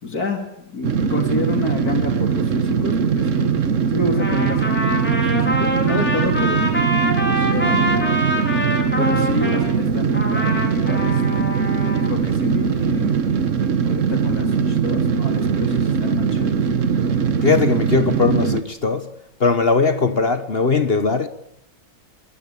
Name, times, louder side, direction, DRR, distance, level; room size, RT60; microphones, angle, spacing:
voice 1, 0.0-3.5 3.9-6.7 7.2-8.2 9.0-11.5 12.0-13.2 13.8-16.9, left 3 dB, 75° left, 3.6 m, -29 dB
sound 1, 0.8-18.6, right 6 dB, 55° right, 1.5 m, -21 dB
Trumpet, 4.1-9.6 10.1-12.1, equal, 5° left, 4.6 m, -25 dB
voice 2, 17.4-19.1 19.4-21.3, left 4 dB, 40° left, 1.4 m, -19 dB
24.5 x 22.0 x 8.7 m
omnidirectional pair, 1.6 m